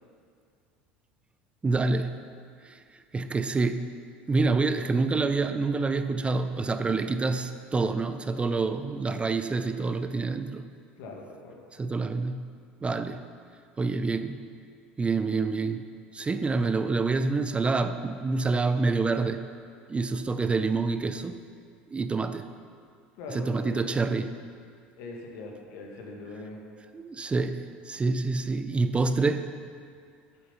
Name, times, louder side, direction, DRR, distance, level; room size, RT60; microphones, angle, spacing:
voice 1, 1.6-2.1 2.6-2.8 3.1-3.9 4.3-10.6 11.7-12.5 12.8-13.2 13.8-14.4 15.0-15.9 16.1-19.5 19.9-21.4 21.9-22.5 23.3-24.3 26.9-29.6, right 3 dB, 20° right, 10 dB, 0.5 m, -27 dB
voice 2, 11.0-11.6 23.2-23.8 25.0-26.6, left 3 dB, 65° left, 0 dB, 1.9 m, -41 dB
8.4 x 7.9 x 5.7 m, 2.2 s
hypercardioid pair, 80°, 5 cm